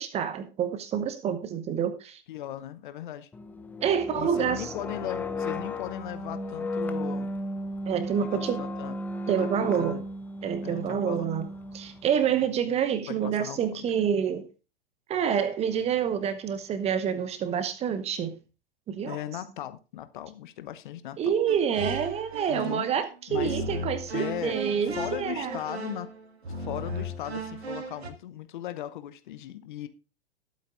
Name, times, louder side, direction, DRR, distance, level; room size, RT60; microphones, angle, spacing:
voice 1, 0.0-2.2 3.8-4.7 7.9-8.6 9.3-10.0 10.4-11.5 11.7-14.4 15.1-18.3 18.9-19.2 21.2-25.6, right 8 dB, 20° right, 0.9 m, -27 dB
voice 2, 2.3-3.3 4.1-7.3 8.2-9.0 9.3-10.0 10.6-11.3 13.1-14.1 19.0-21.3 22.5-22.9 23.3-23.6 24.1-26.1 26.5-29.9, left 12 dB, 50° left, 1.0 m, -38 dB
sound 1, 3.3-12.1, left 1 dB, 5° left, 0.5 m, -34 dB
sound 2, 21.5-23.0 23.3-28.1, right 1 dB, 70° right, 1.8 m, -36 dB
20.0 x 8.4 x 2.5 m
figure-of-eight pair, 100°, 33 cm